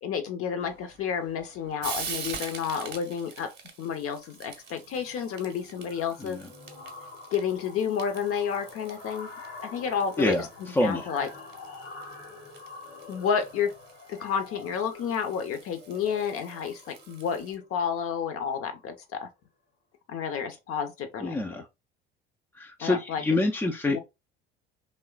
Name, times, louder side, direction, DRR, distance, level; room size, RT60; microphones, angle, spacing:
voice 1, 0.0-3.5 3.8-6.4 7.3-9.3 9.6-10.5 10.8-11.3 13.1-13.7 14.1-19.3 20.1-21.4 22.8-23.2 23.9-24.0, left 7 dB, 45° left, 0.7 m, -30 dB
Frying (food), 0.6-17.6, right 6 dB, 30° right, 0.8 m, -45 dB
sound 1, 3.0-3.1 3.4-3.7 4.0-18.8, left 3 dB, 80° left, 1.0 m, -47 dB
voice 2, 10.7-11.1 21.2-21.6 22.6-24.0, left 2 dB, 10° left, 0.3 m, -26 dB
3.0 x 2.1 x 2.3 m
figure-of-eight pair, 60°, 31 cm